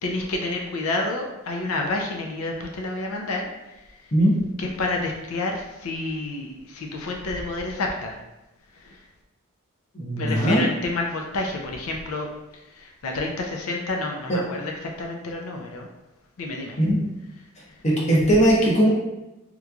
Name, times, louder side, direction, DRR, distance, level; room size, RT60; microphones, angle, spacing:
voice 1, 0.0-3.5 4.6-8.2 8.7-9.0 10.2-15.9 16.4-16.8 17.7-17.8, left 2 dB, 90° left, 1 dB, 0.5 m, -29 dB
voice 2, 9.9-10.6 14.3-14.4 16.8-17.0 17.8-18.9, right 1 dB, 30° left, -4 dB, 0.8 m, -19 dB
3.7 x 2.9 x 2.3 m, 0.98 s
head